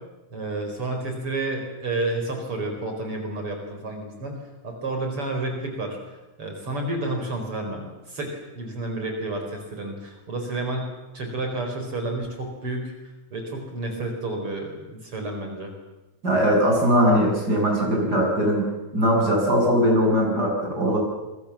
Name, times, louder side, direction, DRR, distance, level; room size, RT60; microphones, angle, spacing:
voice 1, 0.3-4.4 4.6-6.0 6.4-10.9 11.1-12.9 13.3-15.7, right 2 dB, 45° right, 3 dB, 5.4 m, -30 dB
voice 2, 16.2-18.7 18.9-21.0, equal, 30° right, 0 dB, 8.5 m, -20 dB
27.0 x 23.5 x 7.4 m, 1.1 s
omnidirectional pair, 3.3 m